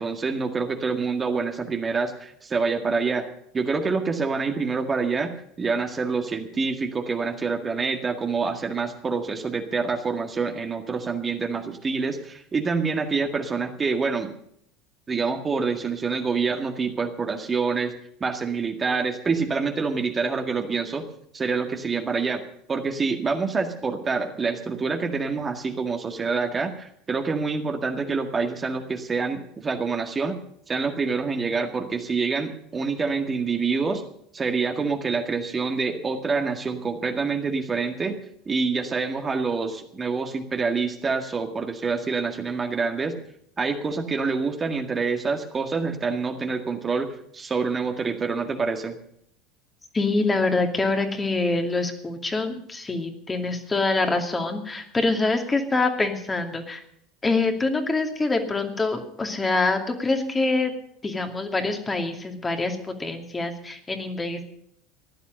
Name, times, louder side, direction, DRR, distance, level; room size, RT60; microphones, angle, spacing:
voice 1, 0.0-3.3 3.5-14.3 15.1-17.9 18.2-21.0 21.3-22.4 22.7-30.4 30.7-34.0 34.3-38.2 38.5-43.2 43.6-48.9, right 4 dB, 25° right, 4 dB, 1.9 m, -26 dB
voice 2, 49.9-56.8 57.2-60.7 61.0-64.4, left 3 dB, 20° left, 4 dB, 2.5 m, -25 dB
16.0 x 11.5 x 6.5 m, 0.69 s
hypercardioid pair, 75°, 0 cm